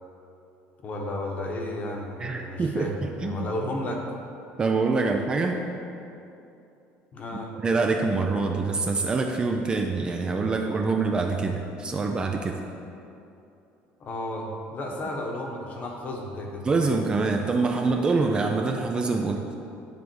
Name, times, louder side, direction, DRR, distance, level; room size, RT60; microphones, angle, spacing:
voice 1, 0.8-2.9 3.2-4.0 7.1-7.5 14.0-16.6, left 1 dB, 35° left, 1 dB, 1.1 m, -33 dB
voice 2, 2.2-3.5 4.6-5.7 7.6-12.6 16.6-19.5, right 3 dB, 20° right, 3 dB, 0.4 m, -25 dB
10.5 x 3.5 x 6.3 m, 2.7 s
cardioid pair, 150°, 4 cm